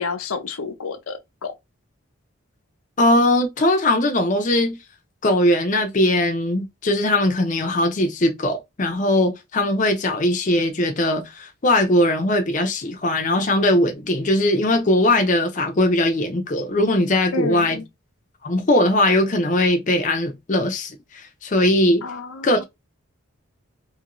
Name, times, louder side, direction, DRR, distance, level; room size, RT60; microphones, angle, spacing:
voice 1, 0.0-1.5 17.3-17.9 22.0-22.6, left 4 dB, 85° left, 0.6 m, -30 dB
voice 2, 3.0-4.8 5.2-17.8 18.4-22.0 22.4-22.6, left 1 dB, 35° left, 0.5 m, -20 dB
2.7 x 2.6 x 2.9 m
head